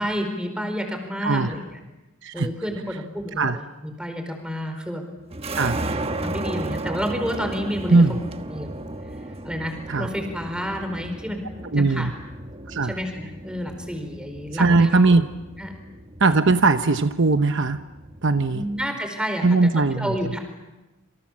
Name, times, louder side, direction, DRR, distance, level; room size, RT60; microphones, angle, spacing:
voice 1, 0.0-1.6 2.3-5.0 6.2-8.2 8.5-8.7 9.4-12.1 12.8-15.1 15.6-15.7 18.5-19.7 20.0-20.4, equal, 5° right, 5 dB, 4.6 m, -30 dB
sound 1, 5.3-18.9, right 2 dB, 30° right, 1.3 m, -35 dB
voice 2, 11.7-12.1 12.7-13.0 14.5-15.3 16.2-17.8 18.2-18.6 19.4-20.1, right 3 dB, 60° right, 9 dB, 1.0 m, -19 dB
28.0 x 26.0 x 7.5 m, 1.0 s
head